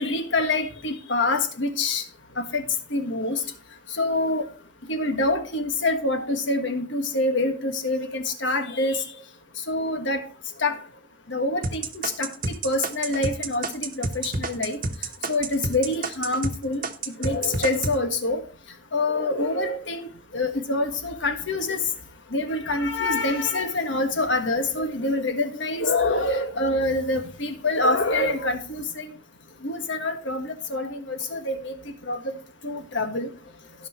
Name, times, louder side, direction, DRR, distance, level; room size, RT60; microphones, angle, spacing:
voice 1, 0.0-2.0 2.4-2.6 2.9-3.4 4.0-4.4 4.9-9.0 9.7-10.2 10.6-10.8 11.3-11.8 12.2-12.3 12.6-14.8 15.3-16.8 17.2-18.4 18.9-20.1 20.3-21.8 22.3-29.1 29.6-31.7 32.1-32.3 32.6-33.3, left 2 dB, 65° left, 1.6 m, -26 dB
sound 1, 11.6-16.6 16.8-18.0, right 3 dB, 45° right, 1.2 m, -28 dB
16.0 x 5.4 x 3.1 m
head